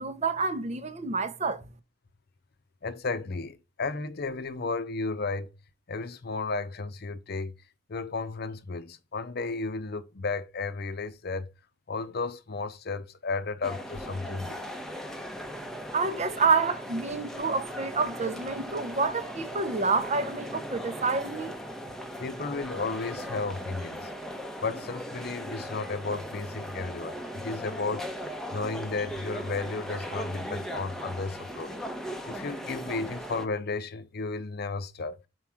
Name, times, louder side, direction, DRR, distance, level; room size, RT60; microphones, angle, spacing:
voice 1, 0.0-1.6 15.9-21.5, right 4 dB, 35° right, 0.8 m, -28 dB
voice 2, 2.8-5.5 5.9-7.5 7.9-11.5 11.9-14.6 22.2-24.1 24.6-28.1 28.5-31.8 32.3-35.2, left 3 dB, 55° left, 0.7 m, -33 dB
sound 1, 13.6-33.5, equal, ahead, 0.8 m, -38 dB
5.8 x 4.7 x 4.9 m
head